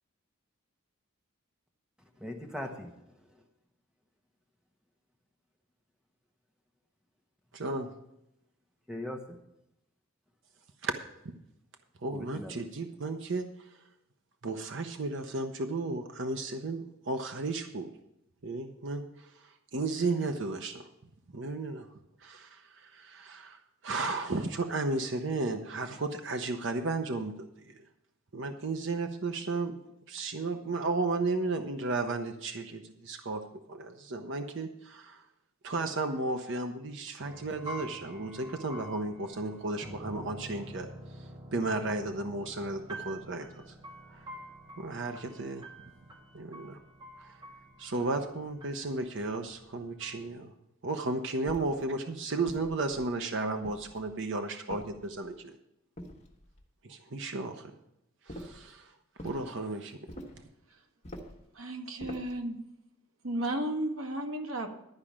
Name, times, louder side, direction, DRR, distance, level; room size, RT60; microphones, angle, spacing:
voice 1, 2.1-3.4 8.9-9.4 12.1-12.6, left 1 dB, 5° right, 2 dB, 1.2 m, -40 dB
voice 2, 7.5-7.9 10.8-10.9 11.2-11.3 12.0-13.7 14.4-17.9 18.4-20.9 21.3-21.9 22.2-27.8 28.3-29.8 30.1-33.4 33.7-35.2 35.6-40.9 41.2-41.3 41.5-43.7 44.1-44.2 44.8-45.7 46.3-46.8 47.2-47.4 47.8-50.5 50.8-55.5 56.8-57.7 58.3-58.9 59.2-60.0, right 3 dB, 55° right, 5 dB, 0.7 m, -34 dB
sound 1, 37.2-50.4, right 1 dB, 20° right, 2.0 m, -48 dB
sound 2, 51.5-51.9 52.5-53.1 53.6-54.2 54.7-55.4 56.0-56.7 58.3-58.7 59.2-59.5 60.1-60.5 61.0-61.5 62.0-62.4, equal, 30° left, 1.5 m, -46 dB
voice 3, 61.5-62.6 63.2-64.7, right 1 dB, 75° right, 3 dB, 1.5 m, -33 dB
12.0 x 4.9 x 8.6 m, 0.83 s
head